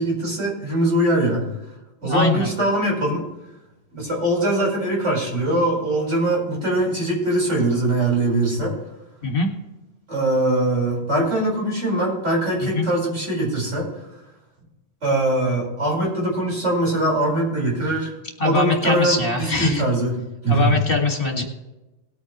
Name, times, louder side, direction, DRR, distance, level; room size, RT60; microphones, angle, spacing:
voice 1, 0.0-1.4 2.0-3.3 3.9-8.7 10.1-13.9 15.0-18.1 18.4-20.1 20.4-20.7, right 1 dB, 85° right, -3 dB, 5.1 m, -22 dB
voice 2, 2.0-2.5 9.2-9.5 12.7-12.9 18.4-19.8 20.5-21.4, left 3 dB, 50° left, 1 dB, 2.3 m, -22 dB
19.0 x 8.4 x 3.1 m, 1.0 s
omnidirectional pair, 1.2 m